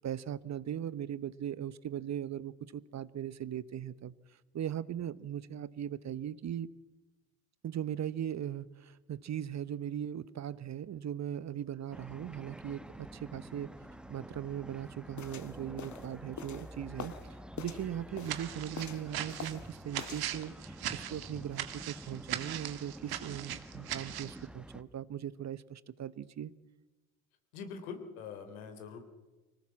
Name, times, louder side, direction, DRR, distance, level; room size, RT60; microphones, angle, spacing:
voice 1, 0.0-4.1 4.5-6.7 7.6-13.7 14.1-26.5, right 10 dB, 40° right, 18 dB, 1.0 m, -39 dB
sound 1, 11.9-24.8, right 1 dB, ahead, 1.6 m, -49 dB
sound 2, 15.2-17.3 17.6-18.4 18.7-19.7 20.0-20.3, left 7 dB, 40° left, 2.1 m, -45 dB
sound 3, 18.2-24.4, right 12 dB, 55° right, 2.0 m, -39 dB
voice 2, 27.5-29.0, left 6 dB, 75° left, 7 dB, 3.5 m, -43 dB
25.0 x 18.0 x 7.4 m, 1.2 s
hypercardioid pair, 55°, 44 cm